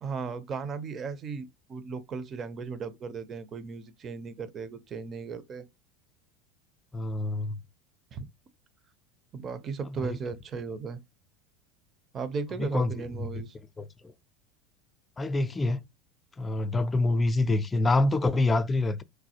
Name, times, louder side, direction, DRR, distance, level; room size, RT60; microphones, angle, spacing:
voice 1, 0.0-5.7 8.1-8.3 9.3-11.0 12.1-13.6, right 5 dB, 35° right, 0.5 m, -36 dB
voice 2, 6.9-7.6 10.0-10.2 12.6-13.4 13.8-14.1 15.2-15.8 16.4-19.0, left 2 dB, 20° left, 0.4 m, -26 dB
3.2 x 2.3 x 2.7 m
hypercardioid pair, 80°, 0 cm